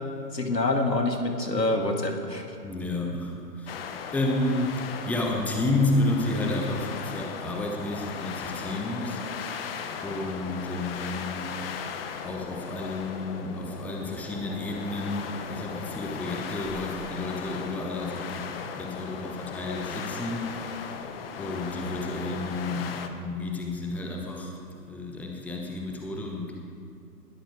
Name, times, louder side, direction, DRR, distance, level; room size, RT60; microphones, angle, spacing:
voice 1, 0.3-2.5, left 2 dB, 80° left, 4 dB, 2.3 m, -26 dB
voice 2, 2.6-9.2 10.0-11.5 12.2-21.0 21.4-26.6, left 2 dB, 5° left, 1 dB, 1.1 m, -31 dB
sound 1, 3.7-23.1, left 6 dB, 35° left, 1.2 m, -37 dB
20.5 x 13.0 x 4.9 m, 2.6 s
figure-of-eight pair, 120°, 49 cm